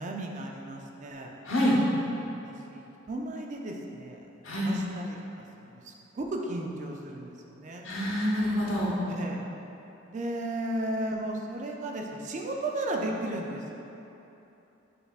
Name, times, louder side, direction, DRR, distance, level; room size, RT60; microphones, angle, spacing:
voice 1, 0.0-1.3 2.2-4.2 4.5-7.8 9.1-9.5 10.1-13.8, right 1 dB, 35° right, 1 dB, 0.4 m, -35 dB
voice 2, 1.4-1.8 4.4-4.7 7.8-8.9, equal, 75° left, -6 dB, 1.1 m, -26 dB
6.6 x 3.4 x 2.4 m, 3.0 s
head